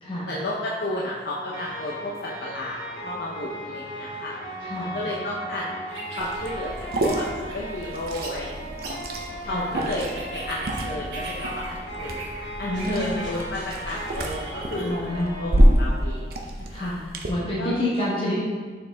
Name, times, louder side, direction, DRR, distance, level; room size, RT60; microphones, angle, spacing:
voice 1, 0.3-4.3 4.8-5.7 6.2-6.7 7.0-7.3 7.5-9.0 9.4-12.2 12.6-16.9 17.6-17.9, left 1 dB, 60° left, -5 dB, 0.7 m, -32 dB
sound 1, 1.5-16.3, right 1 dB, 80° left, 1.8 m, -37 dB
voice 2, 4.6-4.9 9.4-9.7 12.6-13.2 14.8-15.4 16.7-17.0 17.3-18.5, left 1 dB, 30° left, -7 dB, 1.1 m, -28 dB
sound 2, 5.9-14.9, right 2 dB, 75° right, 1.3 m, -42 dB
Liquid, 6.2-17.3, equal, 55° right, 0.7 m, -27 dB
6.6 x 4.4 x 3.5 m, 1.5 s
head